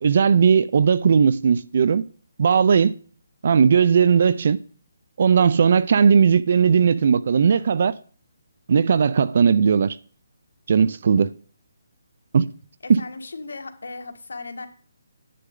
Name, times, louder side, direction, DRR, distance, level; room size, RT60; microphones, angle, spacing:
voice 1, 0.0-2.0 2.4-2.9 3.4-4.6 5.2-7.9 8.7-10.0 10.7-11.3 12.3-12.5 12.9-13.0, right 6 dB, 45° right, 0.5 m, -17 dB
voice 2, 12.8-14.7, left 3 dB, 85° left, 1.7 m, -36 dB
10.0 x 9.5 x 3.8 m
hypercardioid pair, 170°, 0 cm